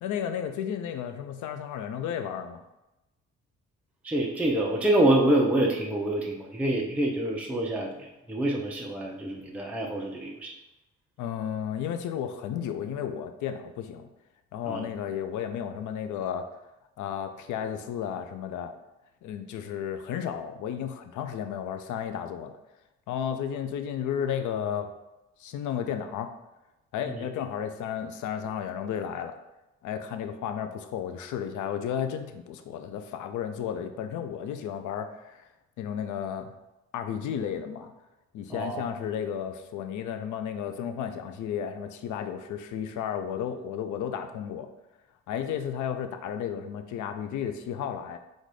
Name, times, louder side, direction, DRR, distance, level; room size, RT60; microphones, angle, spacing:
voice 1, 0.0-2.6 11.2-14.1 14.5-16.5 17.0-18.7 19.2-22.6 23.1-24.9 25.4-26.3 26.9-29.3 29.8-35.5 35.8-36.5 36.9-37.9 38.3-44.7 45.3-48.2, left 8 dB, 75° left, 7 dB, 0.5 m, -33 dB
voice 2, 4.0-10.5 14.7-14.8 27.1-27.2 38.5-38.8, right 1 dB, 5° right, -2 dB, 0.6 m, -26 dB
4.1 x 2.5 x 4.8 m, 0.96 s
cardioid pair, 90°, 30 cm